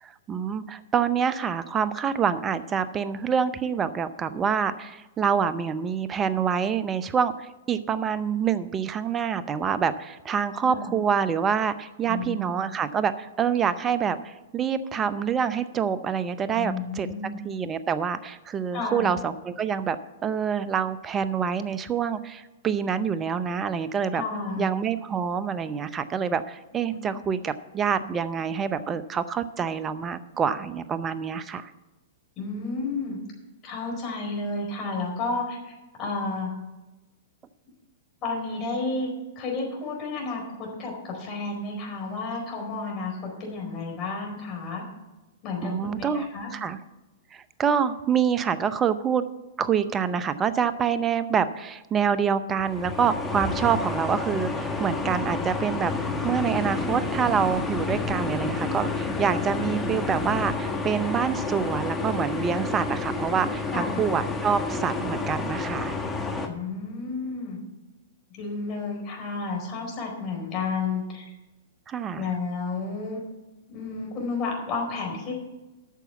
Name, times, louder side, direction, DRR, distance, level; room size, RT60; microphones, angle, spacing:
voice 1, 0.0-17.1 17.4-20.0 20.2-24.2 24.6-31.7 45.6-46.3 46.5-46.8 47.3-49.3 49.6-66.0 71.9-72.4, right 7 dB, 20° right, 13 dB, 0.6 m, -26 dB
voice 2, 12.1-12.7 16.5-17.4 18.7-19.1 24.1-24.7 26.9-27.1 32.4-33.2 33.6-36.5 38.2-44.8 45.4-46.5 63.7-64.0 66.4-67.6 68.3-71.3 72.2-73.2 73.7-75.4, left 3 dB, 35° left, 0 dB, 4.5 m, -31 dB
sound 1, 52.6-66.5, left 3 dB, 10° left, 1.4 m, -30 dB
9.2 x 6.9 x 8.1 m, 1.1 s
hypercardioid pair, 115°, 0 cm